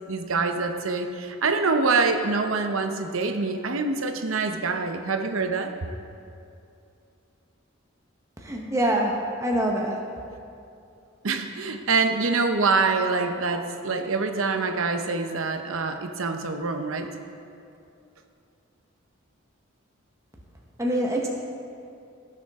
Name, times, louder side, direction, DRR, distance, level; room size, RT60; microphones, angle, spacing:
voice 1, 0.1-5.7 11.2-17.1, right 4 dB, 80° right, 6 dB, 0.8 m, -25 dB
voice 2, 8.4-10.0 20.8-21.3, right 1 dB, 15° right, -1 dB, 1.0 m, -25 dB
16.0 x 7.0 x 3.6 m, 2.6 s
head